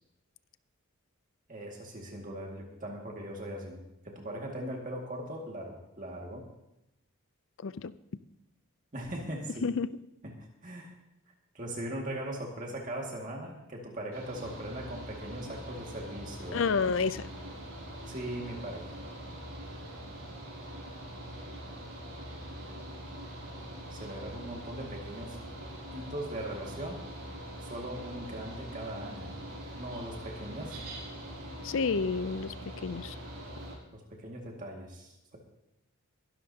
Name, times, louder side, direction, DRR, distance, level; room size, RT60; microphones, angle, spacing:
voice 1, 1.5-6.4 8.9-9.7 10.2-10.3 10.6-10.9 11.5-16.7 18.0-19.0 23.9-25.4 25.9-27.0 27.6-29.4 29.8-30.8 33.9-35.4, right 1 dB, 35° right, -1 dB, 2.1 m, -40 dB
Mechanical fan, 14.1-33.7, right 1 dB, 75° right, 5.9 m, -43 dB
voice 2, 16.5-17.2 31.6-32.5 32.8-33.2, left 5 dB, 60° left, 16 dB, 0.5 m, -29 dB
23.0 x 12.0 x 2.8 m, 0.88 s
head